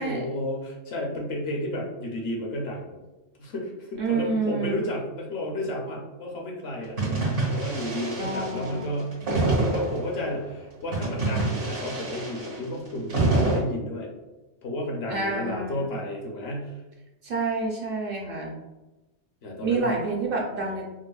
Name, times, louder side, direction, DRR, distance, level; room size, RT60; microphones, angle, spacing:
voice 1, 0.0-3.0 3.4-7.0 7.5-9.2 9.6-14.1 14.6-16.8 19.4-19.9, left 1 dB, 65° left, -1 dB, 0.9 m, -32 dB
voice 2, 4.0-4.7 8.2-8.9 15.1-15.9 17.2-18.5 19.6-20.9, right 3 dB, 60° right, -1 dB, 0.7 m, -28 dB
sound 1, 7.0-10.2 10.9-13.6, right 2 dB, 85° right, 1.9 m, -26 dB
4.7 x 2.0 x 2.3 m, 1.1 s
omnidirectional pair, 1.2 m